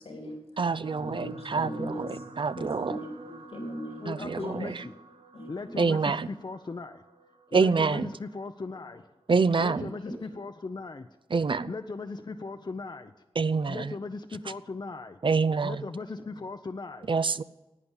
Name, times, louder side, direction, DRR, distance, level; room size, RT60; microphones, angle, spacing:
voice 1, 0.0-0.4 1.0-2.3 2.5-4.6 5.3-5.5 5.8-6.0 9.7-10.2, equal, 90° left, 1 dB, 3.5 m, -39 dB
voice 2, 0.6-2.1 2.4-3.0 4.1-4.8 5.8-6.3 7.5-8.1 9.3-9.9 11.3-11.7 13.4-13.9 15.2-15.8 17.1-17.4, right 4 dB, 55° right, 15 dB, 0.5 m, -26 dB
sound 1, 0.8-9.3 10.1-10.3 10.6-10.7, right 4 dB, 75° right, 1.0 m, -49 dB
voice 3, 4.0-4.9 5.5-6.0 6.3-7.0 7.5-9.1 9.6-11.1 11.7-13.1 13.7-15.2 15.6-17.1, left 3 dB, 45° left, 8 dB, 0.6 m, -38 dB
11.0 x 8.7 x 9.8 m, 1.1 s
cardioid pair, 50°, 10 cm